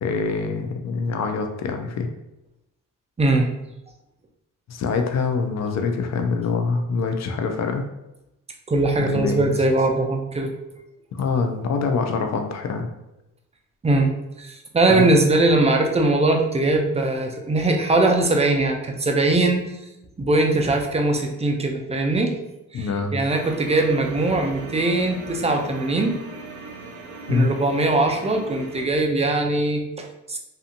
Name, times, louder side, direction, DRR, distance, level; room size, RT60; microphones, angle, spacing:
voice 1, 0.0-2.1 4.7-7.8 9.0-9.5 11.1-12.9 14.9-15.1 22.7-23.1 27.3-27.5, left 4 dB, 55° left, 5 dB, 0.5 m, -24 dB
voice 2, 3.2-3.5 8.7-10.5 13.8-14.1 14.4-19.6 20.2-22.3 22.7-26.2 27.3-30.4, right 2 dB, 20° right, 3 dB, 0.5 m, -21 dB
sound 1, 23.3-28.9, right 3 dB, 60° right, 0.7 m, -38 dB
2.7 x 2.4 x 2.5 m, 0.91 s
cardioid pair, 70°, 34 cm